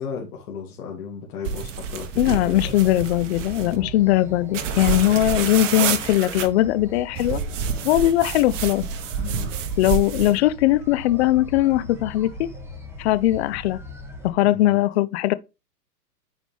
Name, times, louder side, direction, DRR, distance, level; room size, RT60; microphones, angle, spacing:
voice 1, 0.0-2.8 3.6-3.9 5.0-5.1 9.2-9.5 14.4-14.8, left 6 dB, 60° left, 2.4 m, -35 dB
sound 1, 1.4-3.8 4.5-6.5 7.2-10.4, right 7 dB, 50° right, 1.4 m, -28 dB
voice 2, 2.2-7.4 7.8-8.8 9.8-12.5 13.0-13.8 14.2-15.3, left 15 dB, 45° left, 0.6 m, -20 dB
sound 2, 2.5-14.3, left 2 dB, 5° right, 1.9 m, -39 dB
9.5 x 5.0 x 3.4 m
hypercardioid pair, 120°, 48 cm